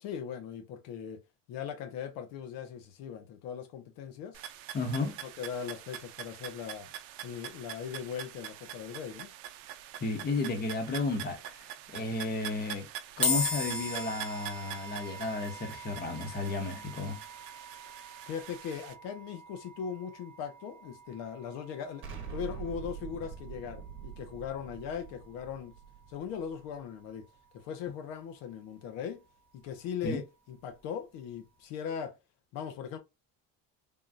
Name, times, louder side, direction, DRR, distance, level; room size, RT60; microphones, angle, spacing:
voice 1, 0.0-1.2 1.5-4.4 5.2-6.9 7.2-9.3 18.2-25.7 26.1-27.3 27.5-29.2 29.5-32.2 32.5-33.0, left 7 dB, 85° left, 0.8 m, -39 dB
sound 1, 4.3-18.9, right 11 dB, 80° right, 0.6 m, -45 dB
voice 2, 4.7-5.2 10.0-12.9 13.2-17.2 30.0-30.2, left 3 dB, 30° left, 0.9 m, -33 dB
sound 2, 13.2-26.6, left 3 dB, 5° left, 0.6 m, -40 dB
Explosion, 22.0-26.9, right 7 dB, 40° right, 1.0 m, -44 dB
3.6 x 2.3 x 2.5 m
cardioid pair, 140°, 33 cm